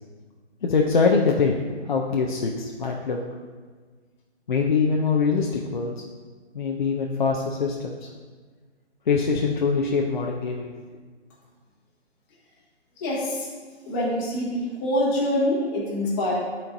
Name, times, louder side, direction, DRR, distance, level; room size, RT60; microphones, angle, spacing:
voice 1, 0.6-1.6 1.9-3.2 4.5-5.9 6.5-8.0 9.1-10.7, left 5 dB, 45° left, -1 dB, 0.5 m, -23 dB
voice 2, 13.0-13.5 13.9-16.4, left 1 dB, 15° left, -6 dB, 1.3 m, -25 dB
11.0 x 4.4 x 2.6 m, 1.5 s
hypercardioid pair, 160°, 34 cm